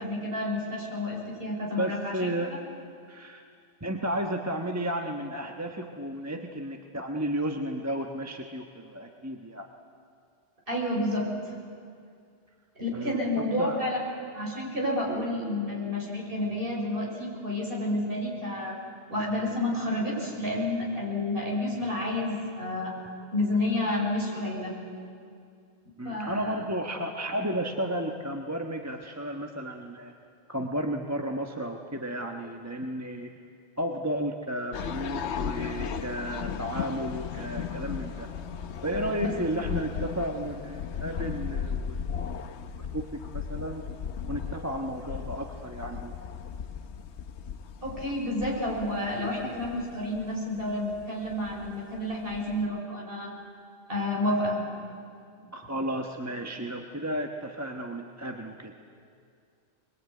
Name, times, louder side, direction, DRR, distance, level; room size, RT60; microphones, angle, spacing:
voice 1, 0.0-2.3 10.7-11.5 12.8-18.8 19.1-22.9 23.3-24.7 26.0-26.6 39.2-39.3 47.8-53.3 53.9-54.6, left 1 dB, 50° right, -3 dB, 6.2 m, -30 dB
voice 2, 1.8-2.5 3.1-3.4 3.8-9.7 12.9-13.8 26.0-30.1 30.5-33.3 33.8-38.3 38.8-42.1 42.8-43.8 44.3-46.1 55.5-58.7, right 1 dB, 15° right, 2 dB, 1.2 m, -33 dB
sound 1, 34.7-52.7, left 7 dB, 70° left, 1.1 m, -36 dB
23.0 x 22.0 x 9.3 m, 2.3 s
omnidirectional pair, 1.2 m